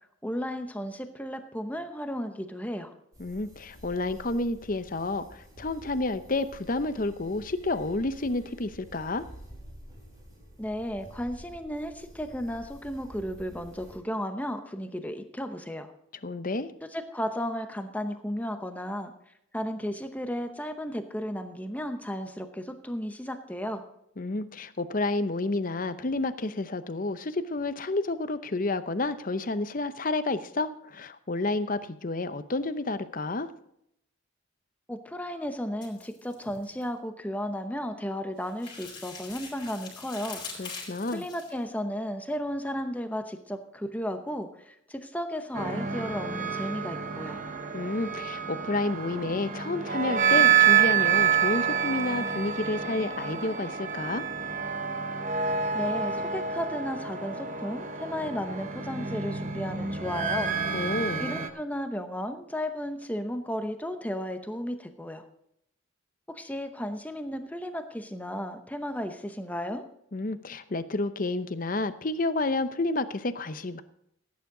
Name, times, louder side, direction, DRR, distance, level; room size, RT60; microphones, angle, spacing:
voice 1, 0.2-2.9 10.6-15.9 16.9-19.1 19.5-23.8 34.9-47.4 55.7-60.5 61.2-65.2 66.3-69.8, equal, 10° left, 7 dB, 0.8 m, -34 dB
sound 1, 3.1-14.0, equal, 20° right, 3.4 m, -49 dB
voice 2, 3.2-9.2 16.2-16.7 24.2-33.5 40.6-41.2 47.7-54.2 60.7-61.3 70.1-73.8, left 2 dB, 40° left, 12 dB, 0.7 m, -30 dB
sound 2, 35.8-36.9 38.4-41.6, left 4 dB, 25° left, 4.3 m, -43 dB
sound 3, 45.5-61.5, right 7 dB, 40° right, 0.9 m, -28 dB
16.5 x 9.5 x 3.9 m, 0.74 s
head